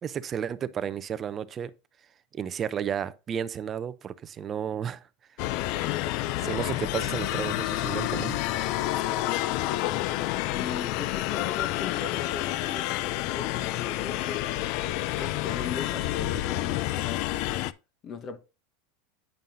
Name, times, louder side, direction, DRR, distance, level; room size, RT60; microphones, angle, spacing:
voice 1, 0.0-1.7 2.3-5.0 6.4-8.4, right 8 dB, 30° right, 0.5 m, -32 dB
sound 1, 5.4-17.7, left 15 dB, 60° left, 0.4 m, -29 dB
voice 2, 10.5-14.5 15.2-17.6 18.0-18.4, left 5 dB, 35° left, 1.1 m, -39 dB
9.0 x 5.5 x 2.6 m
supercardioid pair, 120°, 0 cm